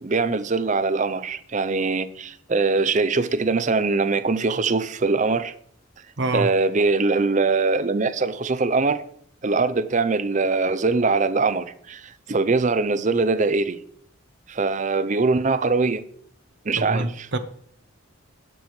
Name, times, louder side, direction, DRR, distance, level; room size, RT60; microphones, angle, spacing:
voice 1, 0.0-5.5 6.3-9.0 9.4-13.8 14.5-16.0 16.7-17.3, right 3 dB, 35° right, 0.5 m, -22 dB
voice 2, 6.2-6.5 16.8-17.4, right 2 dB, 55° right, 0.9 m, -25 dB
17.5 x 6.2 x 3.2 m
head